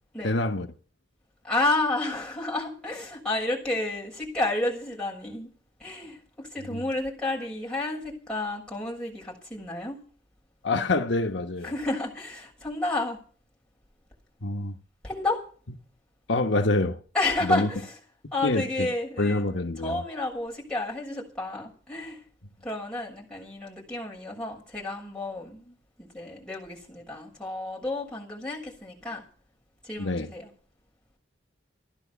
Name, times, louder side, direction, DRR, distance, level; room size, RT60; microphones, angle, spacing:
voice 1, 0.2-0.7 6.7-6.8 10.6-11.7 14.4-14.7 16.3-17.0 17.4-17.7 18.4-18.9 19.2-20.0 30.0-30.3, left 2 dB, 70° left, 1.1 m, -26 dB
voice 2, 1.4-5.5 5.8-10.0 11.6-13.2 15.0-15.4 17.1-18.0 18.3-19.5 19.8-22.2 22.6-29.2 29.8-30.5, left 2 dB, 5° left, 6.7 m, -31 dB
15.5 x 11.0 x 7.0 m
head